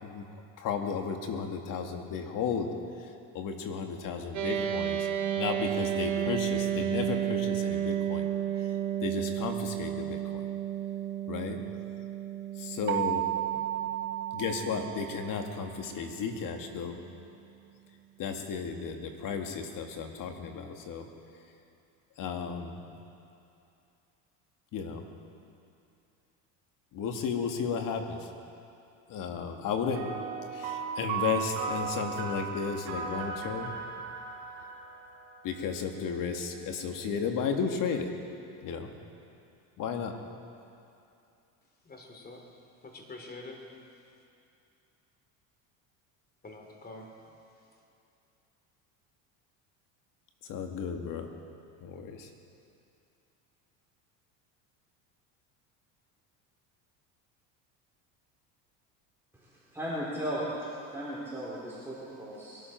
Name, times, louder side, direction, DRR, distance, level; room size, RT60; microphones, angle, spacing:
voice 1, 0.6-2.7 3.3-5.1 5.4-8.2 9.0-10.4 11.3-11.6 12.6-13.3 14.3-17.0 18.2-21.0 22.2-22.8 24.7-25.0 26.9-28.3 29.1-30.1 30.5-33.7 35.4-38.1 38.6-38.9 39.8-40.1 50.4-51.3 51.8-52.3, left 6 dB, 55° left, 4 dB, 2.0 m, -34 dB
sound 1, 4.3-15.9, right 10 dB, 45° right, 1.6 m, -33 dB
sound 2, 12.9-15.6, right 14 dB, 30° right, 0.7 m, -33 dB
sound 3, 30.0-35.7, right 6 dB, 85° right, 3.1 m, -36 dB
voice 2, 41.8-42.5 42.8-43.6 46.4-47.3, left 2 dB, 25° left, 1 dB, 3.1 m, -46 dB
voice 3, 59.7-60.5 60.9-62.6, equal, 5° right, -9 dB, 4.0 m, -36 dB
22.5 x 12.5 x 4.5 m, 2.6 s
supercardioid pair, 100°, 39 cm